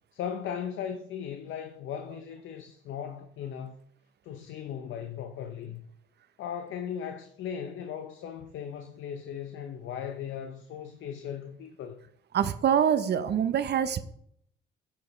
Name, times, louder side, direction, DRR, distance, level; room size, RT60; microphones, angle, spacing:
voice 1, 0.1-3.8 4.2-5.8 6.4-12.0, left 8 dB, 80° left, 0.7 m, -37 dB
voice 2, 12.3-14.0, right 8 dB, 60° right, 0.7 m, -25 dB
9.7 x 6.9 x 3.2 m
cardioid pair, 90°, 20 cm